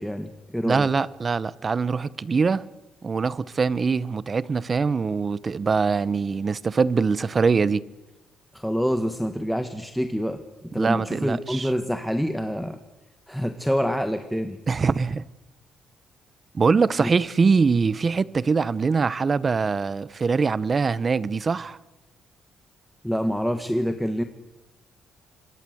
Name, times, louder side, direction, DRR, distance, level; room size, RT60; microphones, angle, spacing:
voice 1, 0.0-0.9 8.5-12.8 13.3-14.6 17.0-17.2 23.0-24.2, equal, ahead, 1.7 m, -26 dB
voice 2, 0.6-2.6 3.0-7.8 10.7-11.7 14.7-15.2 16.5-21.8, right 5 dB, 35° right, 1.0 m, -23 dB
26.0 x 23.0 x 8.1 m
cardioid pair, 90°, 0 cm